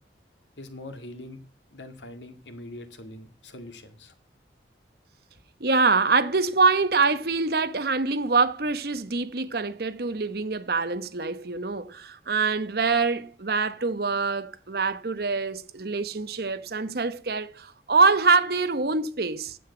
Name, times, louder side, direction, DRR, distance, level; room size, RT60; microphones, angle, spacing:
voice 1, 0.6-1.4 1.7-4.1, left 1 dB, 90° left, 2.1 m, -42 dB
voice 2, 5.6-19.6, right 4 dB, 60° right, 1.0 m, -24 dB
10.0 x 7.9 x 8.3 m
head